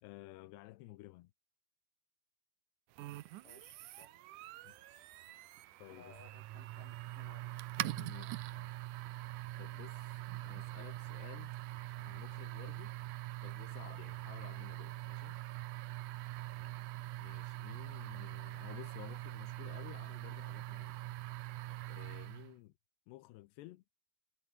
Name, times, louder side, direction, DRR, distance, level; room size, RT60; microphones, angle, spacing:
voice 1, 0.0-1.3 4.6-5.1 5.8-6.1 7.8-8.7 9.6-11.5 12.0-12.9 13.4-15.4 17.2-21.1 21.9-22.7 23.1-23.8, left 18 dB, 85° left, 3.0 m, -54 dB
sound 1, 3.0-22.5, right 16 dB, 80° right, 1.8 m, -44 dB
voice 2, 3.4-4.2 5.9-7.5 16.6-16.9, left 4 dB, 50° left, 7.5 m, -61 dB
omnidirectional pair, 4.8 m